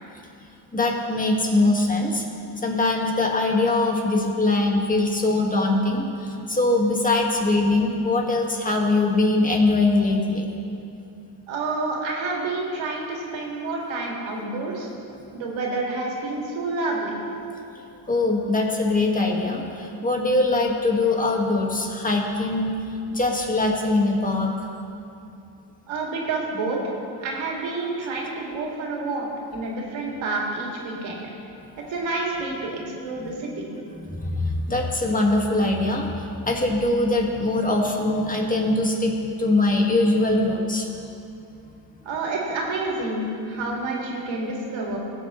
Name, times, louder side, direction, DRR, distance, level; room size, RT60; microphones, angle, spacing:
voice 1, 0.7-2.2 2.6-10.5 18.1-22.7 23.1-24.7 33.9-36.1 36.5-40.9, left 2 dB, 15° left, 0 dB, 1.8 m, -22 dB
voice 2, 11.5-14.9 15.3-17.2 25.9-26.9 27.2-31.2 31.9-33.7 42.1-45.0, right 3 dB, 75° right, -2 dB, 2.4 m, -28 dB
17.5 x 7.8 x 3.2 m, 2.6 s
cardioid pair, 95°, 46 cm